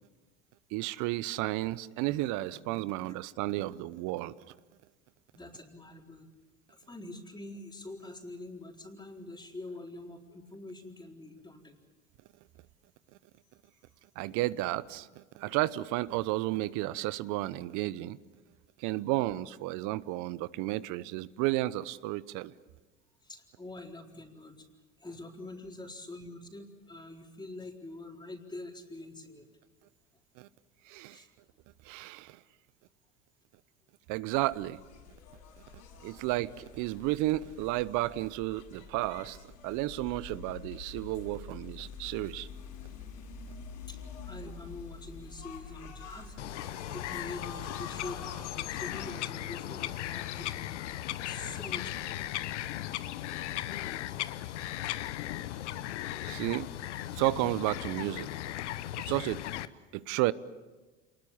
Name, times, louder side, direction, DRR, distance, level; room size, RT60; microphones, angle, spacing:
voice 1, 0.7-4.3 14.2-18.2 18.8-22.5 30.4-30.5 30.9-31.2 31.9-32.4 34.1-34.8 36.0-39.4 39.6-42.5 56.2-56.7 57.2-58.3 59.1-59.4 59.9-60.3, right 17 dB, 55° right, 18 dB, 0.9 m, -32 dB
voice 2, 5.3-6.3 6.7-11.8 18.9-19.0 23.2-24.7 25.0-29.6 31.1-31.3 43.9-50.7 51.2-52.3, left 2 dB, 10° left, 2 dB, 4.2 m, -45 dB
sound 1, 34.3-49.1, left 6 dB, 60° left, 6.9 m, -46 dB
Bird vocalization bird call bird song, 46.4-59.7, left 13 dB, 75° left, 0.9 m, -37 dB
28.0 x 20.5 x 7.2 m, 1.2 s
hypercardioid pair, 75°, 35 cm